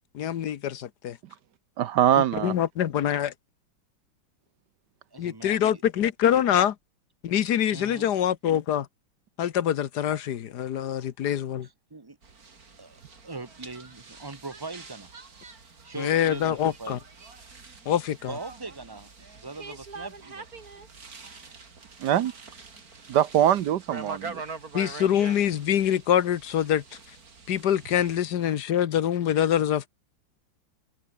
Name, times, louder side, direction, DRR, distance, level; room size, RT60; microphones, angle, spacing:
voice 1, 0.1-1.2 2.2-3.3 5.2-6.7 7.2-8.9 9.4-11.7 16.0-17.0 17.8-18.3 24.7-26.8 27.5-29.9, left 10 dB, 60° left, 1.5 m, -25 dB
voice 2, 1.8-2.5 22.0-22.3 23.1-24.4, right 11 dB, 65° right, 1.3 m, -22 dB
voice 3, 5.1-5.8 7.7-8.1 11.6-12.2 12.8-13.0 13.2-15.1 15.6-17.0 18.2-20.9, right 3 dB, 15° right, 0.9 m, -41 dB
sound 1, 12.2-28.3, right 4 dB, 50° right, 3.3 m, -44 dB
omnidirectional pair, 2.1 m